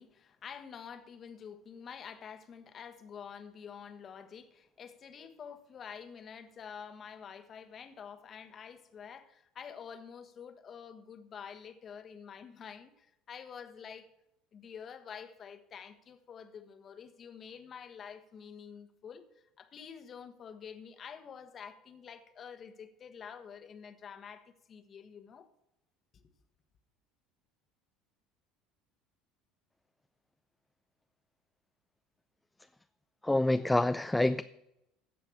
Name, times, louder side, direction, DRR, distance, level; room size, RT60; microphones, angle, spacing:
voice 1, 0.0-14.1 14.5-19.2 19.6-25.5 26.1-26.2, left 7 dB, 40° left, 1.2 m, -48 dB
voice 2, 33.2-34.4, left 1 dB, 10° left, 0.4 m, -27 dB
16.0 x 5.8 x 6.2 m
hypercardioid pair, 70°, 0 cm